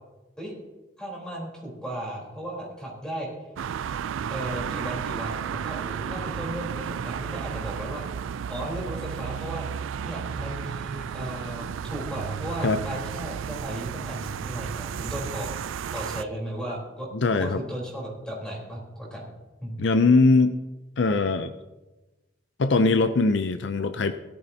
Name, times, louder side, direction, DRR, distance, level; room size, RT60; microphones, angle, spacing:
voice 1, 1.0-3.3 4.3-8.0 8.5-9.7 10.0-17.1 17.4-19.2 19.6-19.8, right 1 dB, 5° left, -3 dB, 3.9 m, -35 dB
sound 1, 3.6-16.2, right 7 dB, 85° right, 0.3 m, -33 dB
voice 2, 17.1-17.6 19.8-20.6 21.0-21.5 22.6-24.1, left 3 dB, 65° left, 10 dB, 0.5 m, -21 dB
17.0 x 12.5 x 2.8 m, 1.1 s
head